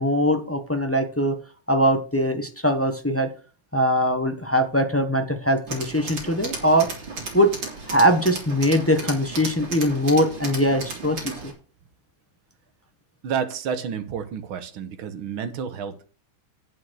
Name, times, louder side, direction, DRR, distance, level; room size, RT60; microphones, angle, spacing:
voice 1, 0.0-1.4 1.7-3.3 3.7-6.9 7.3-7.5 7.9-11.5, equal, 15° left, 6 dB, 0.4 m, -21 dB
Tools, 5.7-11.5, right 3 dB, 65° right, 3.5 m, -34 dB
voice 2, 13.2-16.1, right 7 dB, 80° right, 9 dB, 2.0 m, -30 dB
9.1 x 6.9 x 6.3 m, 0.37 s
omnidirectional pair, 2.2 m